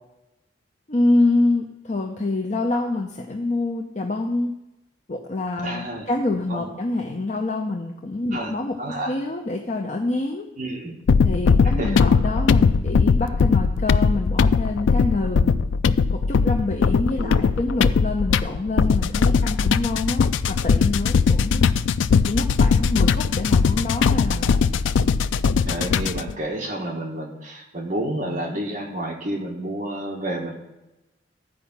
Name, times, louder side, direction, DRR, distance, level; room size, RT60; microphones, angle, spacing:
voice 1, 0.9-4.5 5.1-8.8 9.1-10.5 11.2-15.6 16.1-21.6 22.3-24.5, left 2 dB, 40° left, 2 dB, 0.7 m, -26 dB
voice 2, 5.6-6.1 6.5-6.7 8.3-9.1 10.6-10.9 11.6-12.0 17.2-17.5 25.7-30.5, right 1 dB, 45° right, 0 dB, 1.6 m, -30 dB
sound 1, 11.1-26.3, left 5 dB, 80° left, 0.4 m, -20 dB
12.0 x 5.0 x 7.2 m, 0.97 s
head